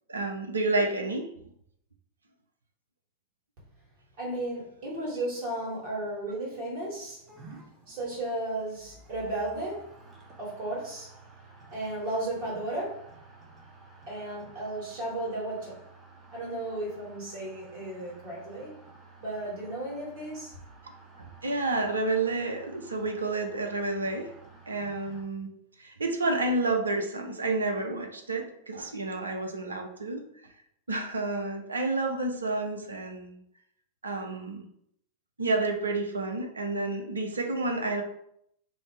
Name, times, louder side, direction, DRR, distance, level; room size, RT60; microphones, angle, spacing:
voice 1, 0.1-1.3 21.2-24.3 24.7-25.5 25.8-30.2 30.9-33.4 34.0-34.7 35.4-38.0, right 2 dB, 75° right, 4 dB, 0.4 m, -30 dB
voice 2, 4.2-7.2 7.9-9.9 10.4-11.1 11.7-13.0 14.1-15.8 16.3-18.8 19.2-20.5, right 1 dB, 50° right, -6 dB, 1.3 m, -34 dB
sound 1, 7.3-25.2, right 3 dB, 20° right, 0.8 m, -53 dB
2.6 x 2.0 x 3.2 m, 0.72 s
figure-of-eight pair, 90°, 0 cm